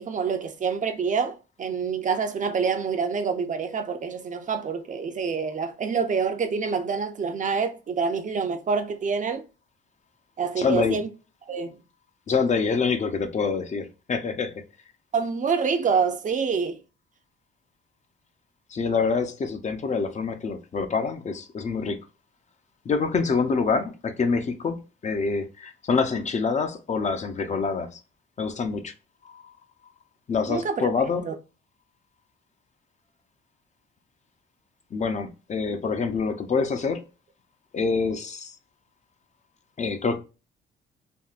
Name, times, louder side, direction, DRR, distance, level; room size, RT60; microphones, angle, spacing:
voice 1, 0.0-9.4 10.4-11.1 11.5-11.8 15.1-16.8 30.5-30.9 31.2-31.3, right 5 dB, 40° right, 0.5 m, -26 dB
voice 2, 10.6-11.0 12.3-14.6 18.7-22.0 22.9-24.8 25.0-28.0 28.4-28.9 29.2-29.5 30.3-31.3 34.9-37.0 37.7-38.6 39.8-40.2, left 5 dB, 35° left, 0.5 m, -26 dB
3.5 x 2.2 x 2.4 m
cardioid pair, 90°, 20 cm